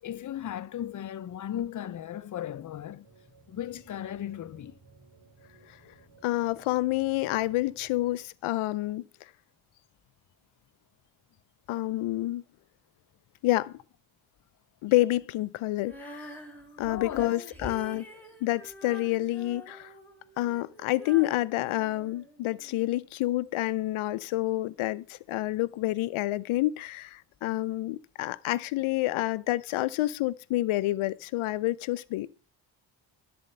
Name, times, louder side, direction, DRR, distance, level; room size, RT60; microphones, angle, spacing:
voice 1, 0.0-3.0 3.5-4.7 16.9-17.4 17.9-18.0, left 11 dB, 40° left, 0.5 m, -36 dB
sound 1, 3.0-8.1, right 4 dB, 45° right, 3.5 m, -58 dB
voice 2, 6.2-9.3 11.7-12.4 13.4-13.7 14.8-16.4 16.8-18.1 18.4-19.9 20.4-32.3, left 17 dB, 90° left, 0.6 m, -28 dB
Female singing, 15.8-22.9, equal, 5° left, 2.5 m, -46 dB
12.0 x 4.3 x 7.8 m
cardioid pair, 105°, 48 cm